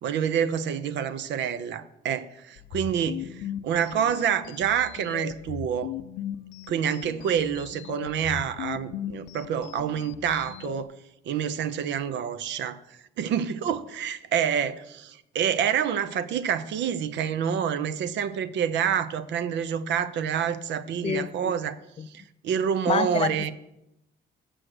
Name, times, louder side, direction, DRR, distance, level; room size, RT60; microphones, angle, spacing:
voice 1, 0.0-5.9 6.7-10.9 11.3-21.8 22.1-23.5, right 8 dB, 80° right, 0.7 m, -27 dB
sound 1, 2.6-10.8, left 11 dB, 85° left, 0.5 m, -38 dB
voice 2, 21.0-21.5 22.0-22.1 22.9-23.3, left 7 dB, 35° left, 0.4 m, -27 dB
7.8 x 6.3 x 7.8 m
cardioid pair, 100°, 18 cm